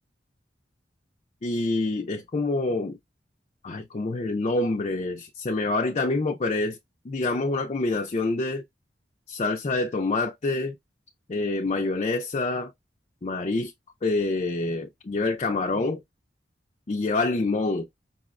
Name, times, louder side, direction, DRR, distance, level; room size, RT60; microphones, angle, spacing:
voice 1, 1.4-3.0 3.6-6.8 7.0-8.6 9.3-10.7 11.3-12.7 13.2-13.7 14.0-16.0 16.9-17.9, left 3 dB, 35° left, 0.4 m, -26 dB
5.3 x 2.1 x 2.4 m
head